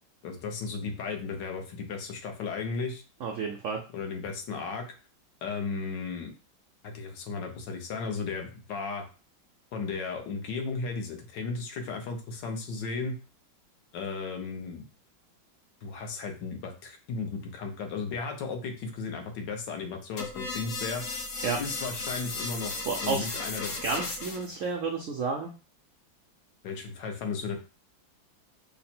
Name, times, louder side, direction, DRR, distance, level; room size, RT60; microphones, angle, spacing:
voice 1, 0.2-3.0 3.9-4.9 5.4-6.3 6.8-9.0 9.7-13.2 13.9-14.9 15.8-21.0 21.6-22.7 23.0-23.7 26.6-27.6, left 4 dB, 70° left, 4 dB, 1.4 m, -35 dB
voice 2, 3.2-3.8 21.4-21.6 22.9-23.3 23.8-25.5, right 4 dB, 90° right, 2 dB, 0.6 m, -31 dB
sound 1, 20.2-24.6, left 3 dB, 55° left, 1.1 m, -35 dB
5.7 x 2.1 x 4.3 m, 0.33 s
omnidirectional pair, 2.1 m